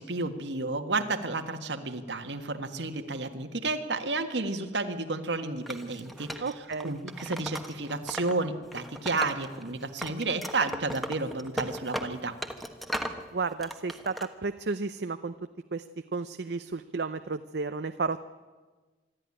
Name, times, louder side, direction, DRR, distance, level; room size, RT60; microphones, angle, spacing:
voice 1, 0.0-6.4 6.8-12.4, right 3 dB, 90° right, 7 dB, 1.7 m, -31 dB
Wood, 5.7-8.3 8.6-9.7 10.0-13.2 13.6-14.3, equal, ahead, 1.3 m, -37 dB
voice 2, 6.4-6.9 13.3-15.3 15.7-15.8 16.1-18.2, right 4 dB, 65° right, 10 dB, 0.6 m, -32 dB
25.5 x 12.5 x 10.0 m, 1.3 s
head